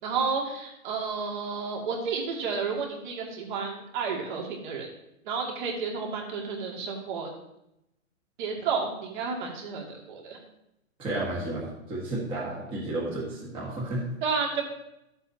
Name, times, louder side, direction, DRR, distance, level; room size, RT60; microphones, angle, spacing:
voice 1, 0.0-4.9 5.2-7.3 8.4-10.4 14.2-14.6, right 5 dB, 35° right, 0 dB, 2.4 m, -31 dB
voice 2, 11.0-14.0, right 2 dB, 15° right, -7 dB, 1.7 m, -32 dB
14.0 x 7.8 x 2.9 m, 0.85 s
hypercardioid pair, 160°, 41 cm